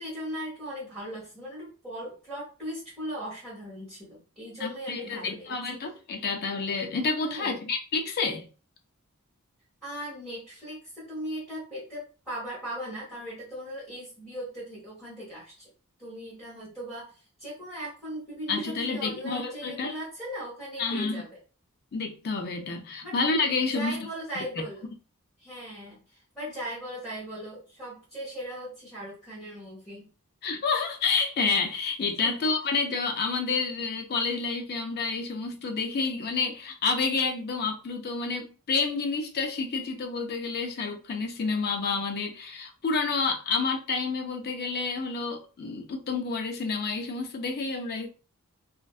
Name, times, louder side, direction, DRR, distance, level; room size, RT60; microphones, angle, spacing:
voice 1, 0.0-5.5 7.2-7.6 9.8-15.7 16.0-21.4 23.0-23.2 23.7-24.9 25.4-30.1 32.2-32.3, equal, ahead, 1.1 m, -38 dB
voice 2, 4.6-8.5 18.5-19.9 20.8-21.2 21.9-24.1 24.3-24.4 30.4-48.1, left 4 dB, 45° left, 0.4 m, -29 dB
2.5 x 2.2 x 2.3 m
head